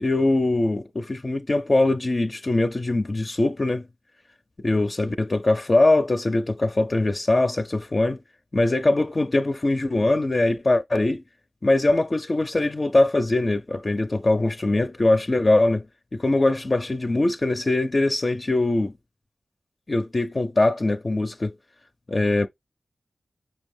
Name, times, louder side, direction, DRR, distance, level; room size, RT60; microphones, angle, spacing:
voice 1, 0.0-3.9 4.6-8.2 8.5-11.2 11.6-15.8 16.1-18.9 19.9-21.5 22.1-22.5, left 2 dB, 45° left, 0.5 m, -22 dB
5.8 x 2.7 x 3.4 m
cardioid pair, 55°, 0 cm